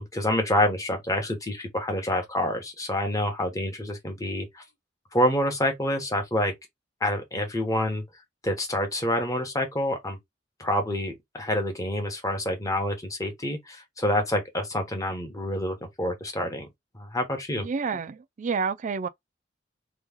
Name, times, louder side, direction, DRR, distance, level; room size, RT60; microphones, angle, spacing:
voice 1, 0.0-4.6 5.1-6.5 7.0-8.0 8.4-10.2 10.6-16.7 16.9-17.7, left 1 dB, 20° left, 1.0 m, -27 dB
voice 2, 17.6-19.1, right 5 dB, 40° right, 0.4 m, -29 dB
3.1 x 2.3 x 3.5 m
head